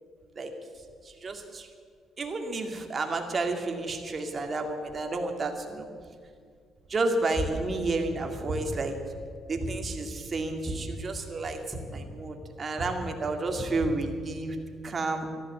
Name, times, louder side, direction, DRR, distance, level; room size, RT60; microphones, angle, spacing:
voice 1, 1.0-1.7 2.2-5.9 6.9-9.0 9.5-14.6 14.8-15.3, right 2 dB, 40° right, 4 dB, 2.2 m, -31 dB
sound 1, 7.4-7.8 8.5-8.9 9.6-10.0 10.7-11.0 11.7-12.1 12.8-13.1 13.8-14.1, right 1 dB, 10° right, 3.0 m, -35 dB
13.5 x 12.0 x 7.8 m, 2.1 s
supercardioid pair, 65°, 0 cm